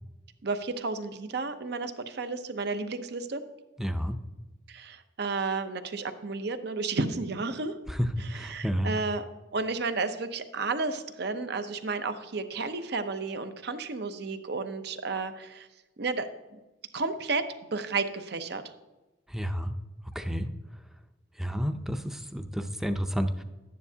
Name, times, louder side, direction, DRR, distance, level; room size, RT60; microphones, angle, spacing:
voice 1, 0.4-3.4 4.7-7.7 8.2-9.2 9.5-15.7 16.0-16.6 16.9-18.6, right 3 dB, 60° right, 9 dB, 0.7 m, -32 dB
voice 2, 3.8-4.2 7.9-8.0 8.3-8.9 19.3-19.7 20.1-20.5 21.4-23.4, equal, ahead, 7 dB, 0.5 m, -31 dB
11.5 x 9.4 x 2.8 m, 1.1 s
head